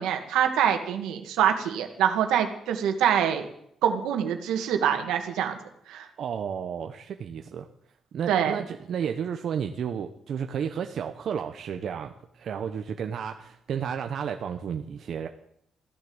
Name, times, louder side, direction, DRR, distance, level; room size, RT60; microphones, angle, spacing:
voice 1, 0.0-3.5 3.8-5.6 5.9-6.1 8.3-8.6, right 9 dB, 90° right, 5 dB, 2.1 m, -25 dB
voice 2, 6.2-7.7 8.1-15.3, right 7 dB, 60° right, 5 dB, 1.0 m, -32 dB
15.0 x 10.5 x 8.0 m, 0.74 s
cardioid pair, 90°, 0 cm